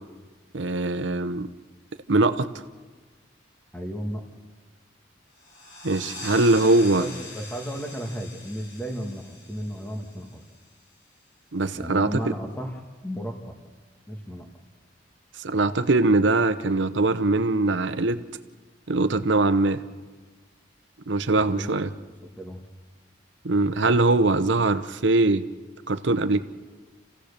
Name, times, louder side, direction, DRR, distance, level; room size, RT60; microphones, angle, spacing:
voice 1, 0.5-1.5 2.1-2.5 5.8-7.1 11.5-12.3 15.4-18.2 18.9-19.8 21.1-21.9 23.4-25.5 25.9-26.4, right 2 dB, 70° right, 11 dB, 0.9 m, -22 dB
voice 2, 3.7-4.3 7.0-10.4 11.7-13.6 14.1-14.5 21.4-21.8 22.4-22.6, equal, 10° left, 2 dB, 1.7 m, -34 dB
sound 1, 5.3-10.7, left 2 dB, 80° left, 7.8 m, -41 dB
28.0 x 16.0 x 6.8 m, 1.4 s
head